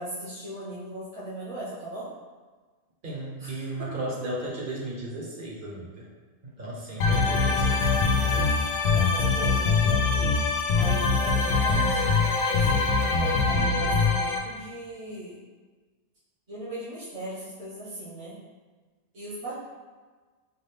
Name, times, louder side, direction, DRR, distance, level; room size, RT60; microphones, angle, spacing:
voice 1, 0.0-2.1 3.4-3.9 8.9-10.2 10.8-15.4 16.5-18.4 19.1-19.5, right 1 dB, 75° right, -11 dB, 1.8 m, -39 dB
voice 2, 3.0-6.1 6.4-8.5, right 1 dB, 50° right, -4 dB, 1.0 m, -35 dB
sound 1, 7.0-14.4, left 4 dB, 80° left, 0.9 m, -23 dB
4.5 x 2.5 x 3.4 m, 1.4 s
omnidirectional pair, 1.2 m